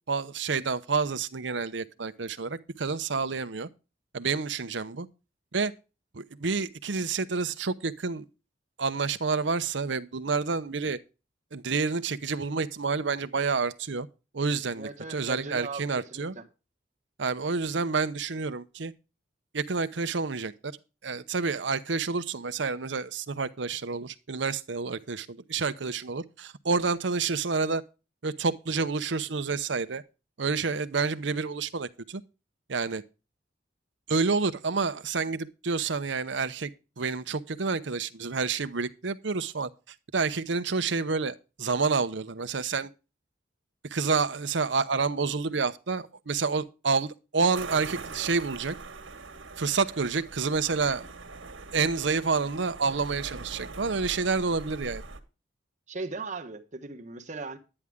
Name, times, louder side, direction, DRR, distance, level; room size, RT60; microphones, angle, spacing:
voice 1, 0.1-3.7 4.1-5.1 5.5-5.7 6.1-8.3 8.8-11.0 11.5-14.1 14.3-16.3 17.2-18.9 19.5-20.7 21.0-27.8 28.2-30.0 30.4-32.2 32.7-33.0 34.1-36.7 37.0-39.7 40.1-42.9 43.9-48.7 49.6-51.0 51.7-55.0, right 4 dB, 70° right, 0.8 m, -29 dB
voice 2, 14.8-16.4 55.9-57.6, right 3 dB, 40° right, 1.2 m, -38 dB
sound 1, 47.5-55.2, right 4 dB, 90° right, 1.6 m, -42 dB
11.0 x 9.9 x 3.6 m
head